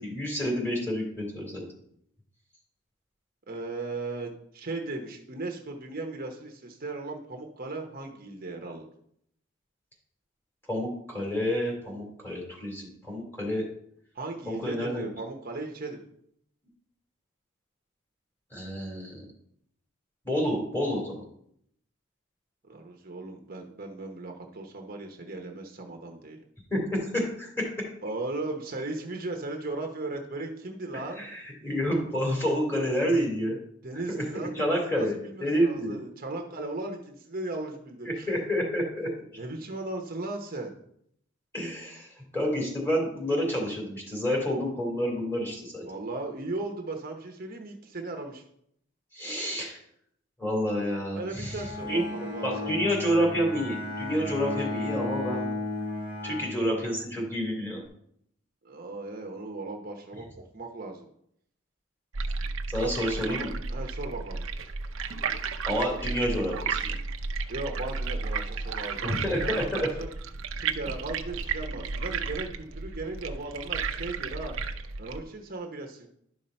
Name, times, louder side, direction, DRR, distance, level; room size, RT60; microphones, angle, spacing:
voice 1, 0.0-1.6 10.7-13.6 14.5-15.1 18.5-19.2 20.2-21.2 26.7-27.9 31.2-33.6 34.1-34.2 34.5-36.0 38.1-39.1 41.5-45.8 49.1-49.8 50.4-51.6 51.9-52.0 52.4-55.5 56.2-57.8 62.7-63.5 65.6-67.0 69.0-69.9, equal, 10° left, -1 dB, 2.8 m, -29 dB
voice 2, 3.5-8.9 14.1-16.0 22.7-26.4 28.0-31.3 32.8-33.2 33.8-38.3 39.4-40.8 45.9-48.4 51.1-52.7 58.6-61.1 62.8-64.4 67.5-70.1 70.6-74.5 75.0-76.1, right 2 dB, 45° right, 2 dB, 0.9 m, -37 dB
Bowed string instrument, 51.4-57.2, left 2 dB, 50° left, 3.9 m, -34 dB
sound 1, 62.1-75.2, right 4 dB, 80° right, 0.7 m, -33 dB
11.5 x 5.5 x 4.3 m, 0.71 s
head